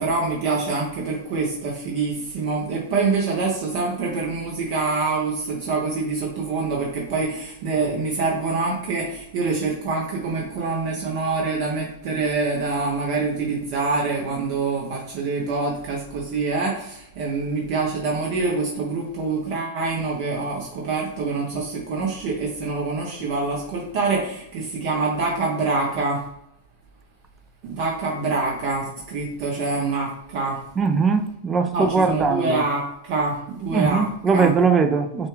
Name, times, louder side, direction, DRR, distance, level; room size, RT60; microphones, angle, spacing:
voice 1, 0.0-26.2 27.6-30.6 31.7-34.5, right 3 dB, 50° right, -2 dB, 0.9 m, -25 dB
voice 2, 30.8-32.6 33.7-35.3, right 5 dB, 20° right, 9 dB, 0.4 m, -20 dB
6.4 x 2.3 x 3.1 m, 0.77 s
supercardioid pair, 145°, 0 cm